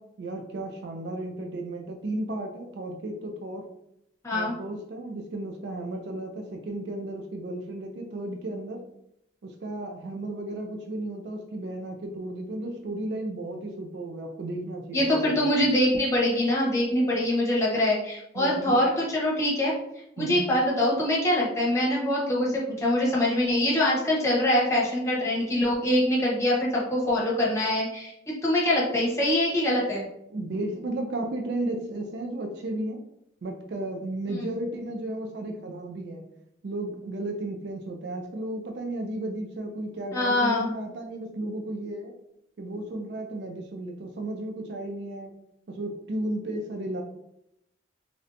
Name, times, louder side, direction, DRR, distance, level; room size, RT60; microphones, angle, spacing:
voice 1, 0.2-3.6 4.3-8.8 9.4-15.6 18.4-18.8 20.2-20.5 30.3-33.0 33.4-36.2 36.6-42.1 42.6-45.3 45.7-47.0, right 1 dB, 60° right, 3 dB, 0.4 m, -34 dB
voice 2, 4.2-4.5 14.9-19.7 20.2-30.1 34.3-34.4 40.1-40.7, left 1 dB, 15° left, -5 dB, 0.8 m, -24 dB
3.2 x 2.6 x 2.5 m, 0.79 s
head